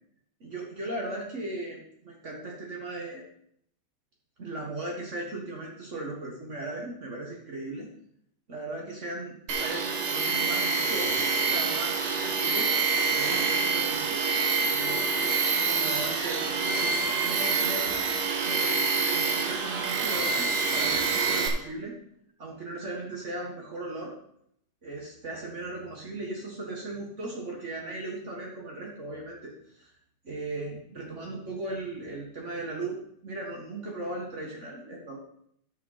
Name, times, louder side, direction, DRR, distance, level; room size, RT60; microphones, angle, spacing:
voice 1, 0.4-3.2 4.4-7.9 8.5-12.7 13.1-14.2 14.7-17.9 18.4-21.9 22.4-24.1 24.8-29.9 30.2-35.2, right 2 dB, 85° right, -2 dB, 0.6 m, -37 dB
Tools, 9.5-21.5, right 4 dB, 55° right, 1.7 m, -26 dB
12.5 x 6.2 x 4.0 m, 0.70 s
omnidirectional pair, 3.7 m